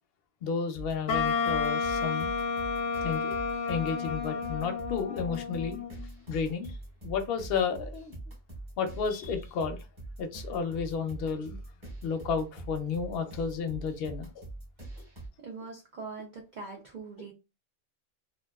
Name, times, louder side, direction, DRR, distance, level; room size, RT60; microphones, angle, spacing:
voice 1, 0.4-2.3 3.0-3.4 3.7-5.8 6.3-6.8 7.0-8.2 8.8-9.8 10.2-11.6 12.0-14.4, left 6 dB, 65° left, 6 dB, 0.7 m, -32 dB
sound 1, 0.7-15.3, right 2 dB, 25° right, 1.0 m, -43 dB
Wind instrument woodwind instrument, 1.1-6.1, left 5 dB, 85° left, 0.9 m, -31 dB
voice 2, 15.4-17.3, right 4 dB, 55° right, 0 dB, 0.5 m, -42 dB
2.4 x 2.2 x 2.2 m, 0.29 s
omnidirectional pair, 1.3 m